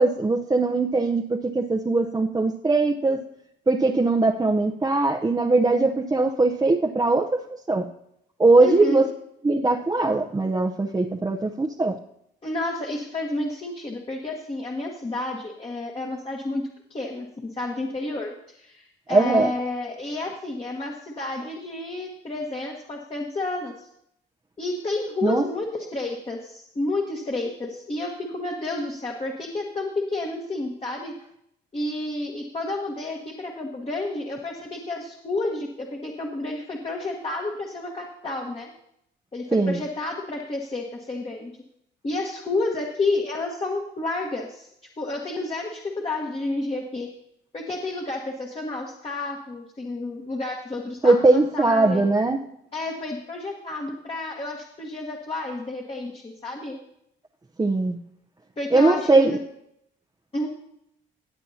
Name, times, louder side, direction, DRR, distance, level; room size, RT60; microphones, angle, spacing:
voice 1, 0.0-3.2 3.7-7.9 8.4-9.1 9.4-12.0 19.1-19.5 25.2-25.4 39.5-39.8 51.0-52.4 57.6-58.0 58.7-59.4, right 3 dB, 20° right, 1 dB, 0.8 m, -20 dB
voice 2, 8.6-9.0 12.4-16.6 16.9-23.9 24.6-31.1 31.7-38.7 39.3-41.5 42.0-44.7 45.0-47.1 47.5-52.0 52.7-56.8 58.6-59.4 60.3-60.5, left 2 dB, 30° left, -1 dB, 1.5 m, -30 dB
17.5 x 8.4 x 2.8 m, 0.75 s
cardioid pair, 90°, 20 cm